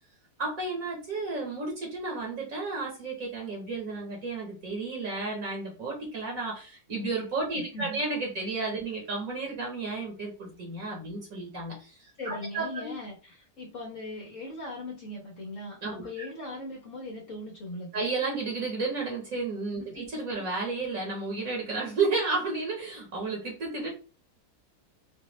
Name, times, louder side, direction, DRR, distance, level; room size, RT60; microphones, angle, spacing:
voice 1, 0.4-12.9 15.8-16.3 17.9-23.9, right 3 dB, 60° right, 0 dB, 1.7 m, -32 dB
voice 2, 7.5-8.0 8.8-8.9 12.2-18.1 19.8-20.1 20.4-20.5, left 1 dB, 55° left, -2 dB, 1.5 m, -40 dB
5.0 x 2.6 x 3.2 m, 0.33 s
omnidirectional pair, 1.7 m